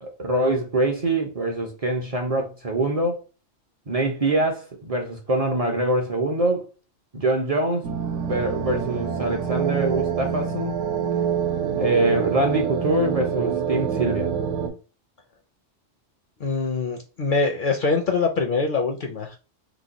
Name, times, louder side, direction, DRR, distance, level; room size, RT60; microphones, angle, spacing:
voice 1, 0.0-3.2 3.9-6.7 7.1-7.8 8.3-10.8 11.8-14.3, right 2 dB, 40° right, 0.5 m, -24 dB
sound 1, 7.8-14.7, right 7 dB, 75° right, 1.0 m, -26 dB
voice 2, 16.4-19.4, left 4 dB, 55° left, 0.6 m, -24 dB
3.0 x 2.2 x 3.8 m
omnidirectional pair, 1.3 m